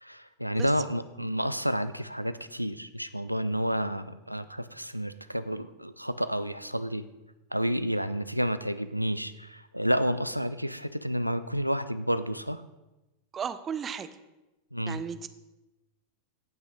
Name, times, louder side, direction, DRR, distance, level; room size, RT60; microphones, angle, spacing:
voice 1, 0.0-7.1 7.5-12.6 14.7-15.0, equal, 90° right, 13 dB, 0.4 m, -30 dB
voice 2, 13.3-14.1 14.9-15.3, right 7 dB, 25° right, 12 dB, 0.6 m, -34 dB
16.0 x 5.9 x 3.9 m, 1.0 s
figure-of-eight pair, 90°, 0 cm